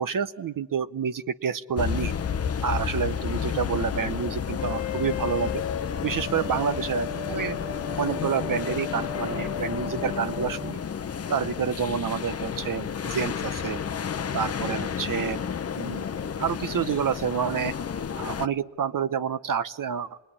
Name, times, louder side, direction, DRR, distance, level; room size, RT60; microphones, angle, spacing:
voice 1, 0.0-2.1 2.6-5.6 6.0-7.6 8.0-10.8 11.3-13.8 14.3-15.4 15.8-16.0 16.4-17.7 18.2-20.1, right 7 dB, 45° right, 11 dB, 0.9 m, -28 dB
sound 1, 1.8-18.5, left 7 dB, 30° left, 0.8 m, -31 dB
sound 2, 4.6-10.7, left 7 dB, 70° left, 1.1 m, -36 dB
26.5 x 20.0 x 10.0 m, 1.2 s
cardioid pair, 95°, 46 cm